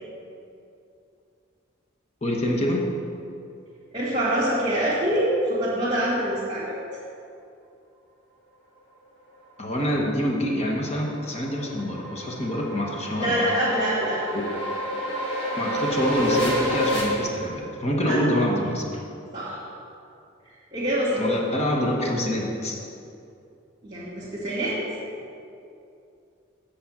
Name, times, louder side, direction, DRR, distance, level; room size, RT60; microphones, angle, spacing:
voice 1, 2.2-2.9 9.6-13.4 14.3-14.5 15.6-19.0 21.2-22.8, equal, 30° left, -1 dB, 1.1 m, -26 dB
voice 2, 3.9-6.8 13.2-14.2 18.1-18.2 19.3-19.6 20.7-21.3 23.8-24.8, right 1 dB, 20° right, -10 dB, 2.1 m, -25 dB
sound 1, 10.4-17.0, equal, 60° left, 2.1 m, -29 dB
8.5 x 5.0 x 7.2 m, 2.6 s
head